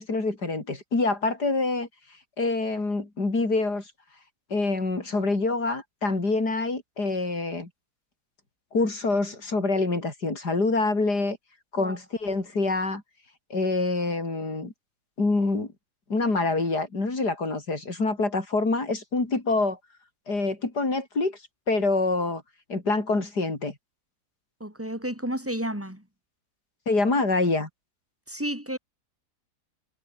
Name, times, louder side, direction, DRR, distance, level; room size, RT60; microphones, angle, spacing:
voice 1, 0.0-1.9 2.4-3.8 4.5-7.7 8.7-11.4 11.7-13.0 13.5-14.7 15.2-15.7 16.1-19.8 20.3-21.4 21.7-22.4 22.7-23.7 26.9-27.7, left 3 dB, 85° left, 5.5 m, -26 dB
voice 2, 24.6-26.0 28.3-28.8, right 1 dB, 10° right, 4.7 m, -31 dB
omnidirectional pair, 1.7 m